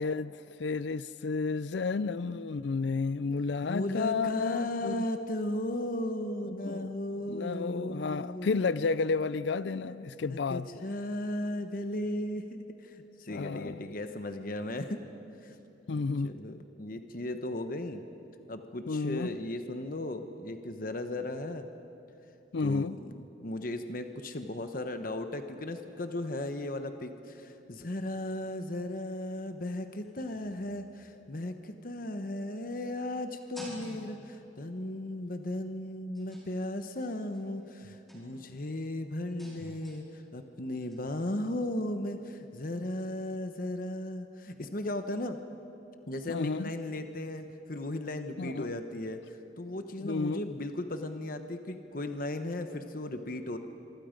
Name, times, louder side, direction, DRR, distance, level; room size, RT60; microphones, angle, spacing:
voice 1, 0.0-5.0 6.5-6.9 7.3-10.7 13.3-13.9 15.9-16.3 18.9-19.4 22.5-23.0 46.3-46.7 48.4-48.7 50.0-50.4, left 4 dB, 65° left, 0.4 m, -31 dB
voice 2, 3.6-8.5 9.8-9.9 10.2-12.5 12.8-15.0 15.4-15.6 15.9-18.0 18.5-21.7 22.6-45.4 46.1-53.6, left 1 dB, 45° left, 1.0 m, -36 dB
sound 1, 30.0-31.5 32.6-34.7 35.2-35.6 36.1-38.7 39.1-41.5, equal, ahead, 5.1 m, -53 dB
26.5 x 24.0 x 5.2 m
head